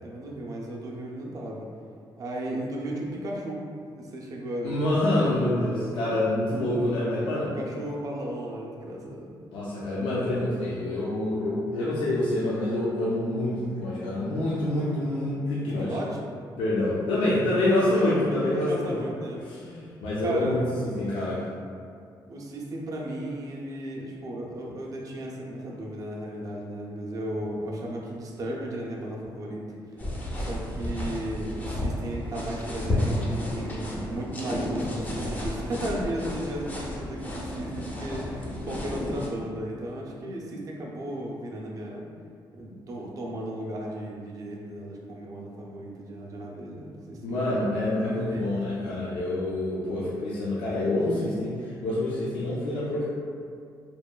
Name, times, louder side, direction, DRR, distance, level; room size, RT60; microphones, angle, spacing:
voice 1, 0.0-1.7 2.2-3.6 3.9-4.8 7.5-9.4 15.7-16.2 18.5-19.5 20.2-20.6 22.3-30.0 30.4-42.1 42.5-47.4 48.1-48.5, right 1 dB, 40° right, -2 dB, 0.4 m, -35 dB
voice 2, 4.6-7.5 9.5-16.0 16.6-18.9 19.5-20.6 21.0-21.4 47.2-53.0, left 1 dB, 80° left, -8 dB, 0.5 m, -26 dB
sound 1, 30.0-39.3, left 1 dB, 20° left, 0.4 m, -32 dB
2.9 x 2.2 x 2.2 m, 2.2 s
cardioid pair, 130°, 9 cm